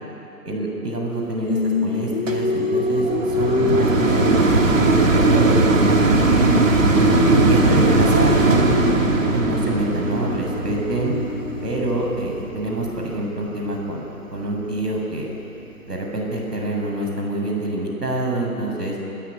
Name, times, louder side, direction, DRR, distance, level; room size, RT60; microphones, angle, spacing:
voice 1, 0.4-3.1 3.4-6.5 7.5-11.1 11.6-15.3 15.9-19.0, right 2 dB, 90° right, 0 dB, 7.6 m, -26 dB
Singing, 1.5-5.8 6.1-12.1, left 4 dB, 40° left, 1.3 m, -25 dB
sound 1, 2.3-13.5 14.1-14.2, right 3 dB, 55° right, 2.7 m, -19 dB
26.5 x 15.5 x 9.9 m, 2.9 s
hypercardioid pair, 170°, 46 cm